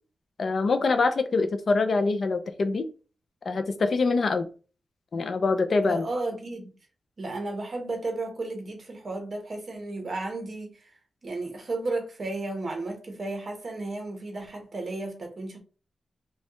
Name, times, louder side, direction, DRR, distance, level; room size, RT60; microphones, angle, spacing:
voice 1, 0.4-2.9 3.5-4.5 5.1-6.0, left 3 dB, 50° left, 0.4 m, -24 dB
voice 2, 5.8-6.7 7.2-10.9 11.2-15.6, right 2 dB, 40° right, 1.1 m, -33 dB
5.2 x 2.3 x 3.0 m
wide cardioid pair, 155°, 0 cm